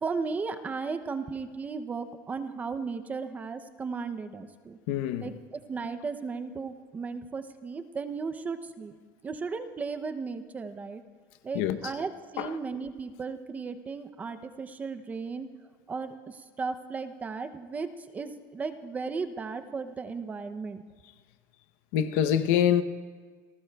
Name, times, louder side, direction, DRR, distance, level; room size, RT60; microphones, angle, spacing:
voice 1, 0.0-4.8 5.2-8.9 9.2-11.0 11.4-15.5 15.9-20.8, right 4 dB, 15° right, 0.5 m, -35 dB
voice 2, 4.9-5.3 11.5-11.8 12.4-12.5 21.9-22.8, left 10 dB, 65° left, 0.7 m, -25 dB
28.5 x 19.0 x 2.3 m
cardioid pair, 170°, 9 cm